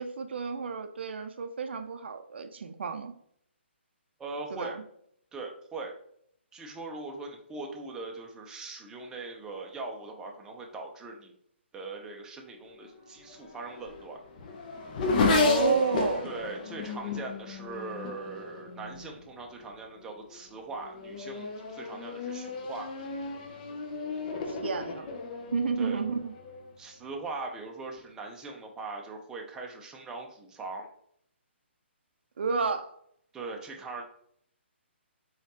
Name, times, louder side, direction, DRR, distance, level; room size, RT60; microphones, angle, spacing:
voice 1, 0.0-3.1 4.5-4.8 15.3-16.3 24.5-25.1 25.5-26.3 32.4-32.9, right 5 dB, 60° right, 7 dB, 0.5 m, -31 dB
voice 2, 4.2-4.8 5.3-6.0 6.5-11.3 11.7-14.2 16.2-22.9 25.8-26.0 26.8-30.9 33.3-34.0, right 3 dB, 10° right, 1 dB, 0.5 m, -40 dB
Race car auto racing / Accelerating revving vroom, 13.3-19.2 20.0-20.4 20.8-26.7, left 3 dB, 40° left, 0.6 m, -32 dB
3.9 x 3.1 x 2.8 m, 0.69 s
figure-of-eight pair, 135°, 7 cm